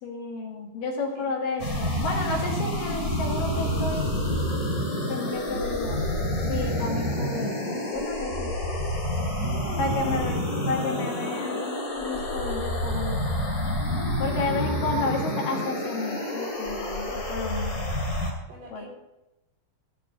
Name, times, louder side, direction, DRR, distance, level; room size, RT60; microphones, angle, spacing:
voice 1, 0.0-4.1 5.1-6.1 6.5-8.5 9.8-13.3 14.2-17.9 18.7-18.9, left 3 dB, 60° left, 1 dB, 3.2 m, -31 dB
voice 2, 1.2-1.6 9.4-10.3 13.6-14.2 18.5-18.9, right 2 dB, 80° right, -4 dB, 6.3 m, -43 dB
sound 1, 1.6-18.3, left 1 dB, 25° left, 2.3 m, -28 dB
15.5 x 5.4 x 7.4 m, 0.99 s
omnidirectional pair, 4.6 m